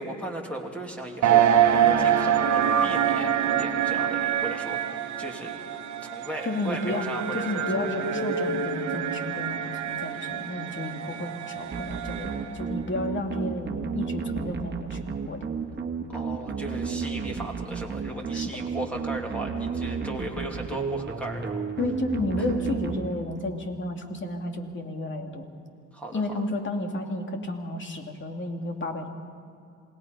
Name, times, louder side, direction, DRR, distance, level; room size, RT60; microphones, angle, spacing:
voice 1, 0.0-5.6 6.0-7.9 16.1-21.7 22.4-22.5 25.9-26.3, right 1 dB, 5° left, 0 dB, 2.8 m, -37 dB
sound 1, 1.2-12.6, right 9 dB, 70° right, 1.4 m, -26 dB
voice 2, 6.5-7.1 7.3-15.5 18.3-18.5 21.8-25.5 26.1-29.1, left 2 dB, 40° left, 4 dB, 2.5 m, -32 dB
sound 2, 11.7-23.6, right 5 dB, 35° right, 1.7 m, -32 dB
28.0 x 18.5 x 5.4 m, 2.5 s
cardioid pair, 90°, 30 cm